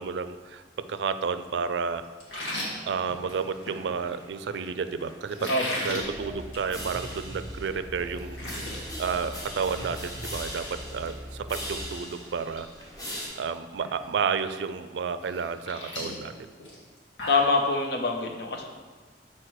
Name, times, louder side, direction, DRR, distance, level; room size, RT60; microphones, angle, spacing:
voice 1, 0.0-2.0 2.9-5.5 5.8-8.4 9.0-12.7 13.4-16.3, right 5 dB, 80° right, 11 dB, 0.4 m, -31 dB
sound 1, 2.2-3.8 5.3-6.0 6.4-6.7 7.0-7.1 7.6-7.7 8.0-8.8 9.2-9.5 9.8-9.9 11.8-11.9 12.3-12.6 12.9-13.3 13.8-13.9 15.2-17.5, left 1 dB, 85° left, 1.7 m, -36 dB
sound 2, 2.3-13.3, equal, 20° left, 1.0 m, -42 dB
sound 3, 6.0-11.8, equal, ahead, 0.5 m, -41 dB
voice 2, 17.3-18.6, left 3 dB, 65° left, 3 dB, 0.8 m, -24 dB
6.4 x 4.2 x 4.5 m, 1.4 s
head